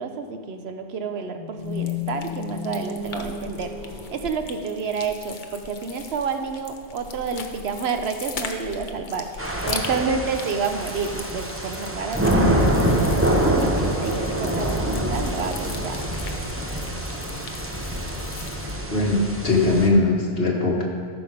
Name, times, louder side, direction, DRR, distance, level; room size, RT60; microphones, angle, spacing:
voice 1, 0.0-12.7 13.1-16.1, right 5 dB, 80° right, 6 dB, 1.0 m, -29 dB
sound 1, 1.3-5.5, left 5 dB, 20° left, 1.3 m, -34 dB
sound 2, 1.6-18.8, left 4 dB, 50° left, 0.9 m, -39 dB
sound 3, 9.4-19.9, right 1 dB, 15° right, 0.9 m, -25 dB
voice 2, 18.9-20.8, left 2 dB, 70° left, -2 dB, 1.9 m, -20 dB
13.0 x 6.2 x 4.9 m, 2.2 s
omnidirectional pair, 1.1 m